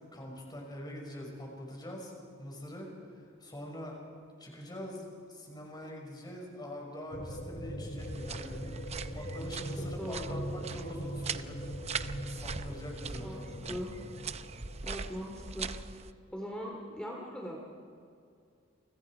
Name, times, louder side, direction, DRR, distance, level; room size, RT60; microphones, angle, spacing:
voice 1, 0.0-2.1 2.4-4.0 4.4-11.6 12.2-13.8, equal, 20° left, 0 dB, 5.7 m, -44 dB
sound 1, 7.1-15.8, equal, 40° left, 1.6 m, -41 dB
sound 2, 8.0-16.1, right 5 dB, 30° right, 0.7 m, -41 dB
voice 2, 10.0-10.4 13.2-13.9 14.8-15.7 16.3-17.6, equal, 5° left, -2 dB, 2.5 m, -40 dB
29.5 x 25.0 x 4.8 m, 2.4 s
head